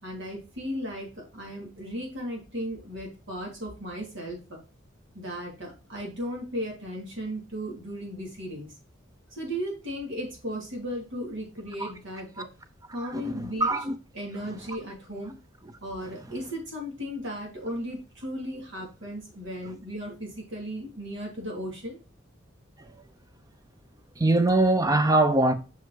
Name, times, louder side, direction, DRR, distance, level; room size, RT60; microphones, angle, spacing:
voice 1, 0.0-4.6 5.1-8.7 9.3-12.5 12.9-13.7 14.1-15.3 15.8-22.0, equal, 65° right, 2.7 m, -36 dB
voice 2, 13.1-13.9 22.8-22.9 24.2-25.5, right 2 dB, 20° right, 0.6 m, -23 dB
5.8 x 5.0 x 3.8 m
head